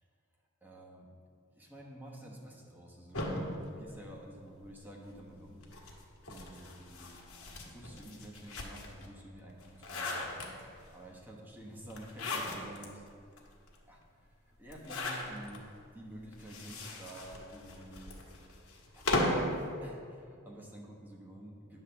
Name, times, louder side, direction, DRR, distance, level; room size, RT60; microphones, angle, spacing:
voice 1, 0.6-1.1 1.5-5.6 6.3-7.3 7.6-10.3 10.9-13.0 13.9-14.0 14.4-15.6 15.9-18.2 18.9-19.1 19.8-21.8, right 1 dB, 10° right, -2 dB, 1.1 m, -50 dB
sound 1, 3.1-4.7 5.6-9.0 9.5-10.9 11.9-12.9 13.4-13.5 13.7-13.8 14.7-15.6 16.3-19.5, left 2 dB, 75° left, 1.2 m, -37 dB
9.5 x 3.3 x 6.8 m, 2.3 s
head